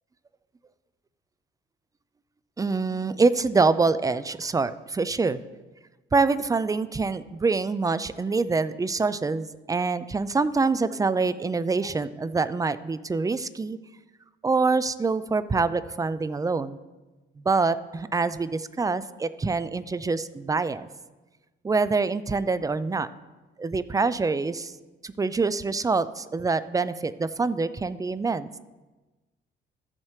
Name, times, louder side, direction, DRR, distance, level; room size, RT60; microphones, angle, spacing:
voice 1, 2.6-5.4 6.1-13.8 14.4-16.8 17.4-20.9 21.6-23.1 23.6-24.7 25.0-28.6, right 4 dB, 15° right, 15 dB, 0.4 m, -25 dB
13.5 x 7.4 x 3.2 m, 1.2 s
cardioid pair, 90°, 20 cm